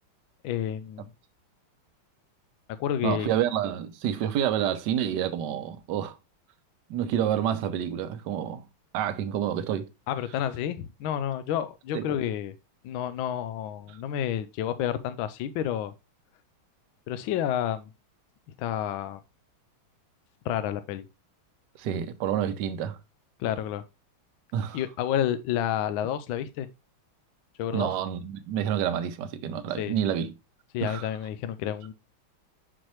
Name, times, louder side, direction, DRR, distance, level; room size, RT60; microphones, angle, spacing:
voice 1, 0.4-1.1 2.8-3.3 10.1-12.5 12.8-15.9 17.1-17.9 18.6-19.2 20.4-21.1 23.4-23.8 24.7-26.7 27.6-27.9 29.8-29.9 30.7-31.9, left 10 dB, 80° left, 1.3 m, -30 dB
voice 2, 3.0-6.1 6.9-8.6 8.9-9.9 11.9-12.1 21.8-23.0 24.5-24.8 27.7-30.3 30.8-31.1, right 10 dB, 65° right, 1.2 m, -28 dB
6.2 x 6.1 x 3.0 m
omnidirectional pair, 2.3 m